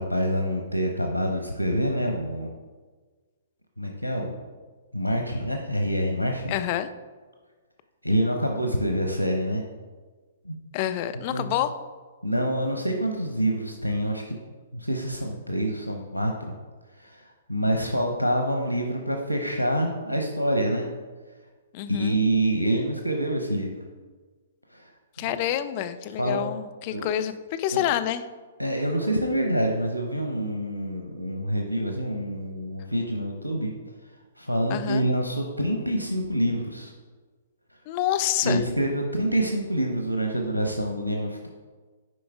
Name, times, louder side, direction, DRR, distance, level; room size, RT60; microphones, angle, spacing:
voice 1, 0.0-2.5 3.8-4.3 4.9-6.5 8.0-9.6 10.4-10.6 11.3-11.5 12.2-14.4 14.7-16.5 17.0-20.9 21.9-23.8 24.7-24.9 25.2-25.4 26.2-26.5 26.9-27.1 27.7-27.8 28.6-33.7 34.4-36.9 38.4-41.5, right 1 dB, 90° right, 2 dB, 0.7 m, -26 dB
voice 2, 6.5-6.9 10.7-11.7 21.7-22.2 25.2-28.2 34.7-35.1 37.9-38.6, left 11 dB, 35° left, 10 dB, 0.4 m, -27 dB
9.5 x 5.0 x 3.5 m, 1.4 s
figure-of-eight pair, 115°, 0 cm